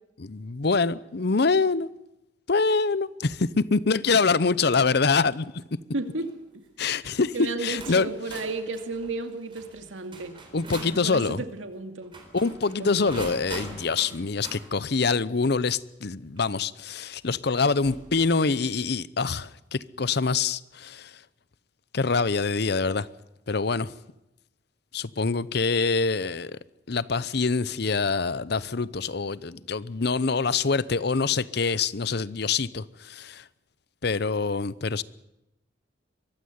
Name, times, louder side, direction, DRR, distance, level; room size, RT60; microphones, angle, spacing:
voice 1, 0.2-1.9 2.5-5.6 6.8-7.3 7.6-8.1 10.5-11.4 12.3-21.1 21.9-23.1 23.5-23.9 24.9-26.6 26.9-33.4 34.0-35.0, left 4 dB, 55° left, 0.7 m, -25 dB
sound 1, 4.1-4.4 4.9-5.2 6.0-6.3 7.2-7.3 7.8-11.0 12.0-14.6 16.4-16.5 17.7-18.5, right 2 dB, 25° right, 4.1 m, -43 dB
voice 2, 5.9-6.3 7.3-10.4 11.0-12.1 12.8-13.3, right 3 dB, 90° right, 2.3 m, -33 dB
23.0 x 15.0 x 9.4 m
head